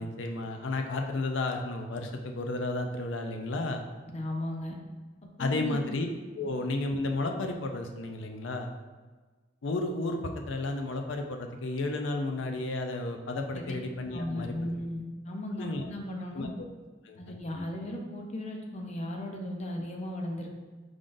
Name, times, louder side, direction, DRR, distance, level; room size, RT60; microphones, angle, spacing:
voice 1, 0.0-3.8 5.4-6.1 6.3-8.7 9.6-14.7 15.6-15.9 16.3-16.7 17.0-17.3, left 2 dB, 80° left, 4 dB, 0.5 m, -32 dB
voice 2, 4.1-4.8 5.4-5.8 13.5-13.7 14.1-16.5 17.2-20.5, left 1 dB, 35° left, 2 dB, 0.6 m, -36 dB
4.9 x 3.8 x 2.5 m, 1.3 s
head